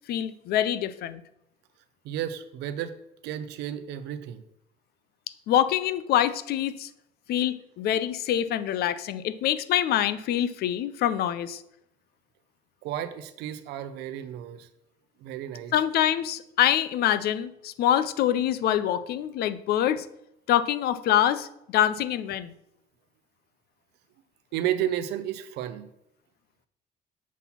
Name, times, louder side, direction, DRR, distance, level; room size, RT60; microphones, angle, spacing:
voice 1, 0.1-1.2 5.5-6.9 7.3-11.6 15.7-20.1 20.5-22.5, left 11 dB, 70° left, 14 dB, 0.5 m, -25 dB
voice 2, 2.0-2.9 3.2-4.4 12.8-14.7 15.2-15.7 24.5-25.9, right 11 dB, 85° right, 11 dB, 0.7 m, -32 dB
7.2 x 4.1 x 5.8 m, 0.80 s
cardioid pair, 110°, 17 cm